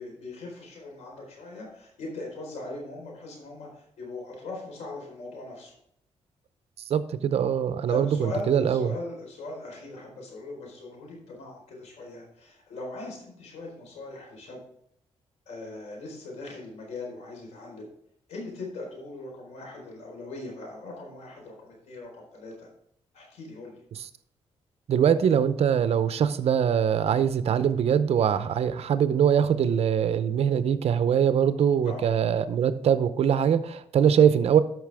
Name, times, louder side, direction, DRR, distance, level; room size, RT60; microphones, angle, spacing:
voice 1, 0.0-5.8 7.9-14.6 15.5-17.9 18.3-22.7 23.1-23.8 31.8-32.1, left 2 dB, 90° left, 0 dB, 4.2 m, -40 dB
voice 2, 6.9-8.9 24.9-34.6, right 8 dB, 65° right, 12 dB, 0.7 m, -22 dB
12.5 x 6.0 x 3.5 m, 0.73 s
cardioid pair, 115°, 11 cm